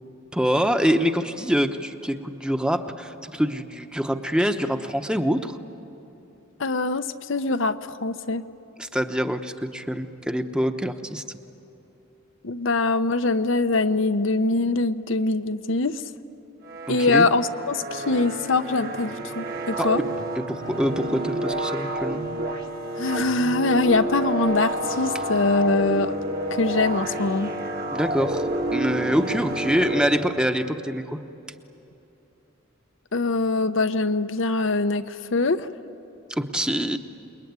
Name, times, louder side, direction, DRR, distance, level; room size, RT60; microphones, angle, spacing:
voice 1, 0.3-5.6 8.8-11.2 16.9-17.3 19.8-19.9 20.4-22.2 27.9-31.2 36.3-37.0, equal, 5° right, 7 dB, 0.9 m, -25 dB
voice 2, 6.6-8.4 12.4-16.0 16.9-20.0 23.0-26.2 26.5-27.5 33.1-35.7, left 3 dB, 70° left, 10 dB, 0.8 m, -23 dB
sound 1, 16.6-30.8, right 1 dB, 50° right, 1.6 m, -30 dB
28.0 x 21.5 x 9.6 m, 2.9 s
head